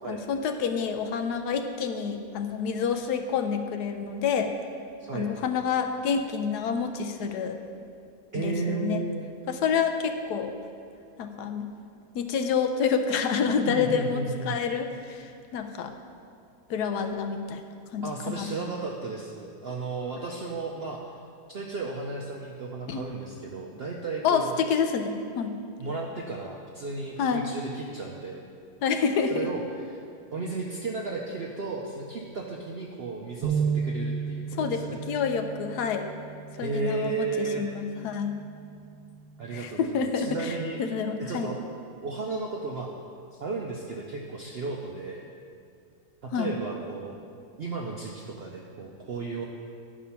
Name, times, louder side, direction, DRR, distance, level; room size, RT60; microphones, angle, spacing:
voice 1, 0.1-4.5 5.1-7.6 8.4-9.0 9.5-10.5 11.2-11.7 12.1-15.9 16.7-17.6 17.9-18.1 18.4-18.5 22.9-23.0 24.2-25.6 27.2-27.4 28.8-29.5 34.6-36.1 36.6-38.3 39.5-41.5 46.3-46.5, left 6 dB, 75° left, 7 dB, 1.2 m, -28 dB
voice 2, 5.0-5.3 8.3-9.3 13.7-14.6 18.0-21.0 21.5-24.6 25.8-28.4 29.3-29.6 29.9-30.0 30.3-35.0 36.6-37.6 39.4-40.8 41.2-41.6 42.0-42.9 43.3-45.3 46.2-47.2 47.6-49.5, right 3 dB, 65° right, 0 dB, 0.6 m, -34 dB
sound 1, 33.4-39.7, right 5 dB, 85° right, 1.3 m, -34 dB
10.0 x 5.0 x 5.7 m, 2.3 s
omnidirectional pair, 1.8 m